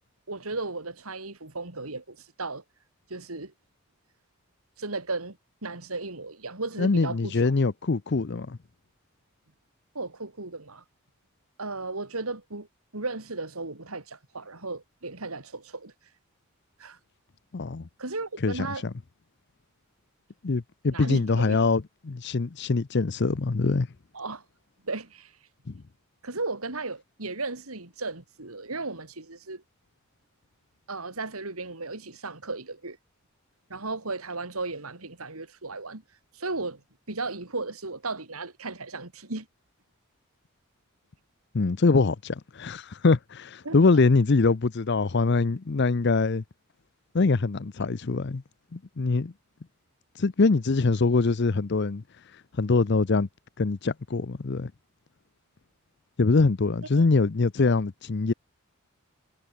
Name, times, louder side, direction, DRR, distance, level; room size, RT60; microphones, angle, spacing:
voice 1, 0.3-2.6 3.1-3.5 4.8-7.4 10.0-10.8 11.6-12.7 12.9-15.9 16.8-17.0 18.0-18.9 20.9-21.6 24.1-24.4 24.8-25.3 26.2-29.6 30.9-33.0 33.7-36.0 36.3-36.8 37.1-39.5 43.6-44.0 56.9-57.1, right 3 dB, 85° right, 3.4 m, -35 dB
voice 2, 6.8-8.6 17.5-17.8 18.4-18.9 20.4-23.9 41.5-46.4 47.1-48.4 48.7-49.3 50.2-52.0 52.6-53.3 53.6-54.7 56.2-58.3, left 3 dB, 50° left, 0.6 m, -23 dB
head